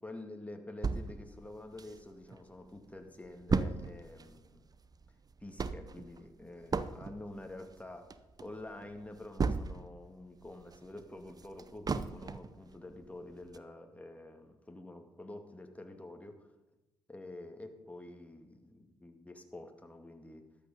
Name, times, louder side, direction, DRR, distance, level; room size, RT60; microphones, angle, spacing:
voice 1, 0.0-4.7 5.4-8.1 8.4-16.5 17.1-20.4, left 2 dB, 10° left, 5 dB, 2.1 m, -48 dB
sound 1, 0.8-2.4 2.8-2.9 3.0-10.0 10.4-12.6 13.0-13.1 13.5-13.6, right 4 dB, 35° right, 0.8 m, -36 dB
13.0 x 9.4 x 5.3 m, 1.0 s
supercardioid pair, 55°, 11 cm